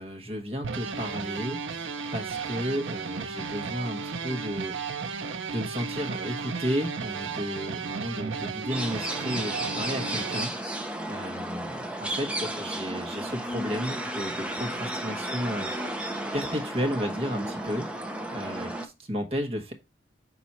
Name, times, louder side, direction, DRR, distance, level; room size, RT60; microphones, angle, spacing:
voice 1, 0.0-4.8 5.5-15.9 16.3-19.7, equal, 30° right, 3 dB, 1.2 m, -33 dB
sound 1, 0.6-10.4, right 5 dB, 75° right, 0.7 m, -34 dB
sound 2, 8.7-18.9, right 1 dB, 5° right, 0.6 m, -33 dB
5.9 x 4.0 x 4.2 m, 0.25 s
head